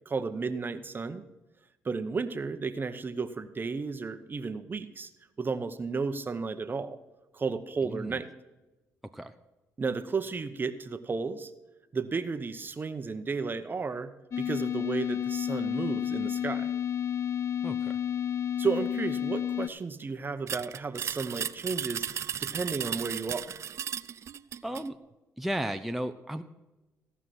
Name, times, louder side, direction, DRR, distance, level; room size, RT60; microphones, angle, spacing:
voice 1, 0.1-1.2 1.8-5.1 5.4-7.0 7.3-8.3 9.8-11.5 11.9-16.7 18.6-23.6, right 4 dB, 35° right, 10 dB, 0.9 m, -33 dB
voice 2, 7.8-8.2 9.1-9.3 17.6-17.9 24.6-25.0 25.4-26.4, right 1 dB, ahead, 7 dB, 0.6 m, -34 dB
sound 1, 14.3-19.7, left 9 dB, 50° left, 0.5 m, -31 dB
sound 2, 20.5-24.9, right 8 dB, 50° right, 0.4 m, -35 dB
16.0 x 5.6 x 6.2 m, 1.1 s
cardioid pair, 75°, 6 cm